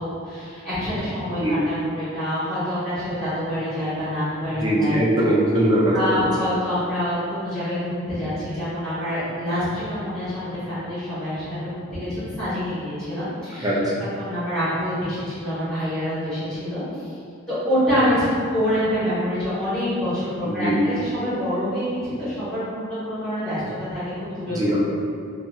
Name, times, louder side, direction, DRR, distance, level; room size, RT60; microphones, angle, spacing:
voice 1, 0.0-5.0 5.6-13.7 14.2-17.0 17.5-24.6, equal, 5° left, -15 dB, 1.3 m, -26 dB
voice 2, 4.6-6.3 13.6-14.0 20.4-20.8 24.5-24.8, right 1 dB, 20° right, -5 dB, 0.4 m, -21 dB
2.9 x 2.4 x 2.3 m, 2.3 s
head